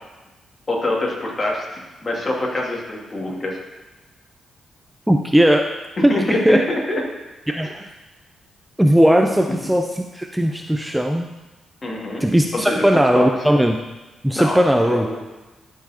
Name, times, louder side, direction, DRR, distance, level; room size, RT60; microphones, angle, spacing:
voice 1, 0.7-3.6 6.1-7.0 7.6-7.7 11.8-12.2 12.5-12.8 13.1-13.3 14.3-14.6 14.9-15.2, left 1 dB, 35° left, -2 dB, 2.7 m, -24 dB
voice 2, 5.1-5.7 6.0-6.6 7.6-7.7 8.8-11.3 12.2-13.8 14.2-15.1, equal, 5° right, 3 dB, 0.6 m, -17 dB
12.5 x 4.8 x 4.4 m, 1.1 s
supercardioid pair, 65°, 0 cm